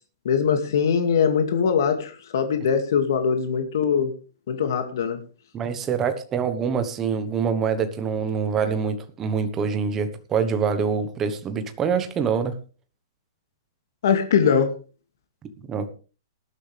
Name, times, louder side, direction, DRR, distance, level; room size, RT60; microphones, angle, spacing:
voice 1, 0.2-4.1 4.5-5.2 14.0-14.7, left 7 dB, 55° left, 6 dB, 2.3 m, -22 dB
voice 2, 5.5-12.5 15.7-15.9, right 6 dB, 15° right, 8 dB, 1.2 m, -25 dB
19.0 x 12.0 x 3.5 m, 0.35 s
hypercardioid pair, 180°, 2 cm